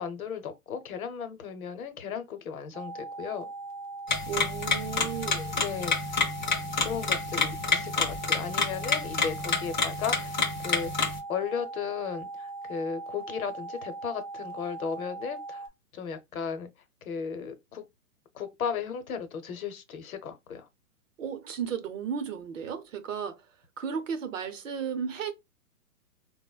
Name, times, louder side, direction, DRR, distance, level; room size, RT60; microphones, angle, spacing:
voice 1, 0.0-3.5 5.4-6.0 6.8-15.7 15.9-16.7 17.0-17.8 18.3-20.7, left 7 dB, 65° left, 0.8 m, -35 dB
sound 1, 2.7-15.7, right 3 dB, 25° right, 0.5 m, -40 dB
sound 2, 4.1-11.2, left 4 dB, 35° left, 0.4 m, -29 dB
voice 2, 4.3-5.6 21.2-23.4 23.8-25.3, right 7 dB, 55° right, 0.7 m, -34 dB
3.4 x 2.1 x 2.2 m
hypercardioid pair, 165°, 45 cm